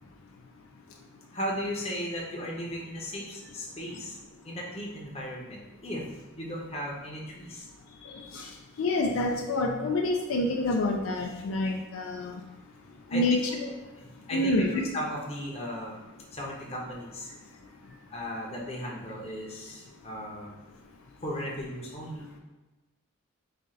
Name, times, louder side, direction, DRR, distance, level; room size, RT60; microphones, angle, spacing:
voice 1, 1.3-4.2 4.4-6.1 6.4-7.7 13.1-13.4 14.0-14.5 14.9-16.0 16.3-17.3 17.9-20.5 21.2-22.3, equal, 30° left, -3 dB, 0.7 m, -36 dB
voice 2, 8.8-12.3 13.1-13.7 14.3-14.9, left 2 dB, 75° left, 1 dB, 0.4 m, -27 dB
4.3 x 2.4 x 3.7 m, 1.1 s
head